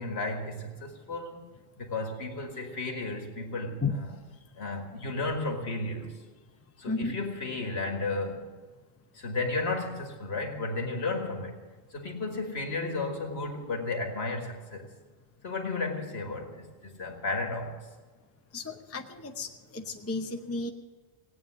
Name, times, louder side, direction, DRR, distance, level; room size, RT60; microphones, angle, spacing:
voice 1, 0.0-1.5 1.8-4.1 4.5-6.2 6.8-8.6 9.1-11.6 11.9-14.9 15.4-17.9, left 3 dB, 70° left, 3 dB, 2.1 m, -33 dB
voice 2, 18.5-19.5 19.7-20.7, left 3 dB, 15° left, 5 dB, 0.7 m, -33 dB
18.0 x 9.0 x 7.5 m, 1.4 s
omnidirectional pair, 1.1 m